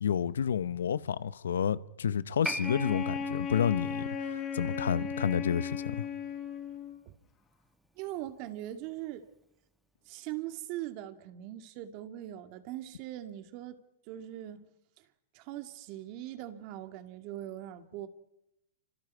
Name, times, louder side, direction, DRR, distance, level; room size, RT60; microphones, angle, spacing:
voice 1, 0.0-6.1, left 8 dB, 85° left, 0.9 m, -30 dB
Piano, 2.4-9.4 9.7-9.8, equal, ahead, 1.3 m, -44 dB
Wind instrument woodwind instrument, 2.6-7.0, left 6 dB, 30° left, 5.3 m, -36 dB
voice 2, 8.0-9.3 10.1-13.8 14.1-14.7 15.3-18.1, right 13 dB, 45° right, 2.2 m, -41 dB
29.0 x 25.5 x 4.7 m
hypercardioid pair, 125°, 0 cm